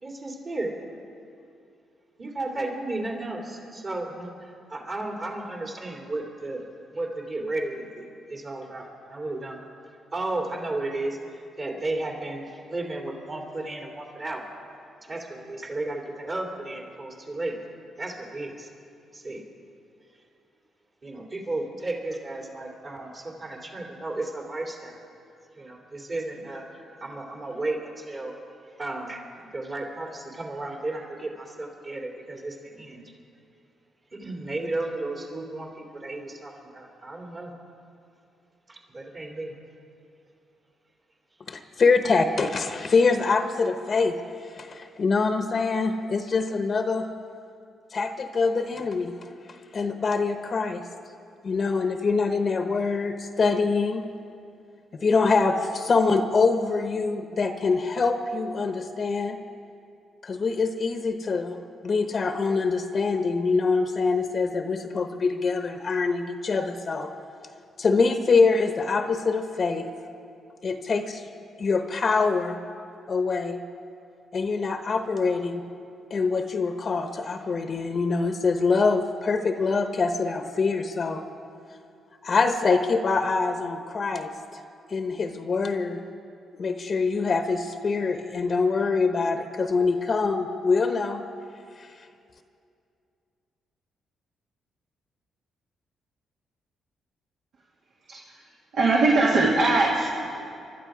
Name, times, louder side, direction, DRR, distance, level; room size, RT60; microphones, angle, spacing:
voice 1, 0.0-0.7 2.2-6.6 6.9-9.6 10.1-11.2 11.6-14.4 15.1-17.6 18.0-18.7 19.1-19.4 21.0-24.9 25.5-26.6 27.0-28.3 28.8-33.0 34.1-37.5 38.7-39.5, right 2 dB, 45° right, -1 dB, 2.8 m, -33 dB
voice 2, 41.5-44.1 44.6-47.1 47.9-49.3 49.7-50.8 51.4-54.0 55.0-59.4 60.2-61.6 61.8-67.1 67.8-69.9 70.6-71.2 71.6-72.6 73.1-73.6 74.3-75.6 76.1-81.2 82.2-84.6 84.9-86.0 86.6-91.2, left 4 dB, 50° left, 7 dB, 1.0 m, -24 dB
voice 3, 98.7-100.0, right 3 dB, 70° right, -4 dB, 2.0 m, -21 dB
24.0 x 11.5 x 4.9 m, 2.5 s
supercardioid pair, 65°, 0 cm